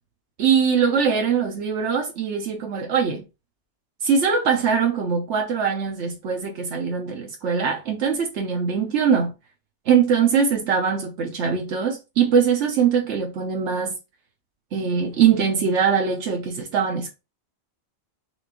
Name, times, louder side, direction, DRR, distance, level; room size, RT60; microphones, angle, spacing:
voice 1, 0.4-3.2 4.0-9.3 9.9-14.0 14.7-17.1, right 6 dB, 85° right, 1.1 m, -22 dB
4.5 x 3.3 x 2.9 m
omnidirectional pair, 1.2 m